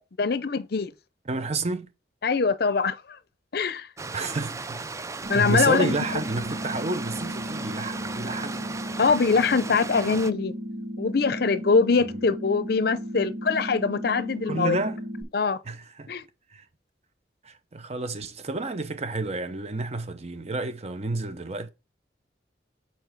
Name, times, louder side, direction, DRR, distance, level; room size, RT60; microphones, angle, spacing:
voice 1, 0.2-0.9 2.2-3.0 3.5-3.9 5.3-6.2 9.0-10.5 11.0-14.8 15.3-15.6 16.1-16.2, left 4 dB, 60° left, 0.6 m, -23 dB
voice 2, 1.3-1.9 4.1-4.8 5.3-8.6 14.5-15.0 15.7-16.1 16.5-16.6 17.4-21.7, right 2 dB, 35° right, 0.7 m, -30 dB
Stream, 4.0-10.3, right 4 dB, 15° right, 0.3 m, -36 dB
sound 1, 5.2-15.2, equal, 80° right, 3.1 m, -35 dB
7.0 x 4.5 x 4.6 m
head